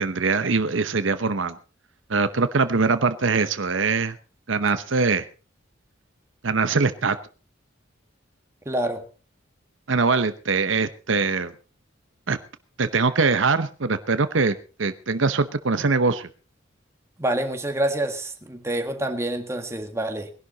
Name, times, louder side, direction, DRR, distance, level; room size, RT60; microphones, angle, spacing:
voice 1, 0.0-1.6 2.1-4.2 4.5-5.3 6.4-7.2 9.9-11.5 12.3-12.4 12.8-16.3, right 4 dB, 70° right, 12 dB, 0.9 m, -22 dB
voice 2, 8.7-9.0 17.2-20.3, right 1 dB, 15° right, 5 dB, 1.8 m, -27 dB
20.5 x 11.5 x 4.0 m, 0.36 s
head